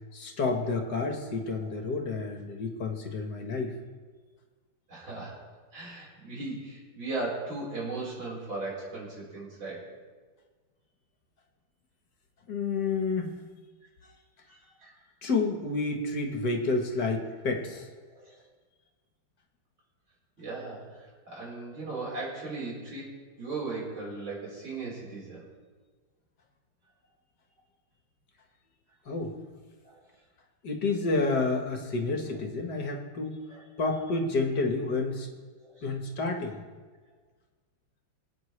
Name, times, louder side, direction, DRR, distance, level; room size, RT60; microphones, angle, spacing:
voice 1, 0.1-3.7 12.5-13.3 15.2-17.9 29.1-29.3 30.6-33.4 33.8-35.3 35.8-36.6, left 3 dB, 60° left, 3 dB, 1.8 m, -29 dB
voice 2, 4.9-5.4 5.7-9.9 14.5-14.9 18.1-18.4 20.4-23.1 23.4-25.4 29.8-30.0 33.5-33.6 35.6-35.8, right 3 dB, 80° right, -5 dB, 5.1 m, -37 dB
24.5 x 9.1 x 3.3 m, 1.4 s
omnidirectional pair, 2.1 m